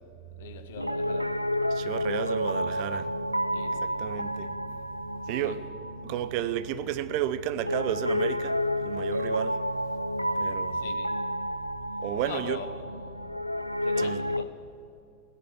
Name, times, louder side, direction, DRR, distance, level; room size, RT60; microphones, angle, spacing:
voice 1, 0.3-1.4 3.5-4.0 5.3-5.6 10.7-11.2 11.8-14.5, left 8 dB, 55° left, 1.4 m, -43 dB
Piano, 0.8-14.5, equal, 90° right, 0.3 m, -31 dB
voice 2, 1.7-4.8 5.1-5.7 6.0-9.6 10.4-10.8 12.0-12.6 14.0-14.2, right 12 dB, 45° right, 0.6 m, -33 dB
15.5 x 10.5 x 7.8 m
figure-of-eight pair, 90°, 0 cm